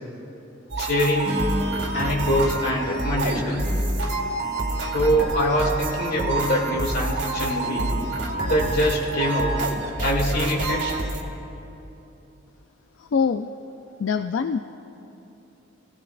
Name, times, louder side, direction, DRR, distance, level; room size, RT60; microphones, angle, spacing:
sound 1, 0.7-11.2, right 2 dB, 65° right, 2.1 m, -27 dB
voice 1, 0.8-1.4 1.9-3.6 4.9-7.9 8.4-9.5 10.0-10.8, equal, 55° left, -2 dB, 2.6 m, -24 dB
Acoustic guitar / Strum, 1.2-4.5, left 1 dB, 30° right, 3.6 m, -34 dB
voice 2, 13.0-13.5 14.0-14.6, left 6 dB, 80° left, 8 dB, 0.4 m, -24 dB
26.5 x 16.5 x 2.5 m, 2.9 s
head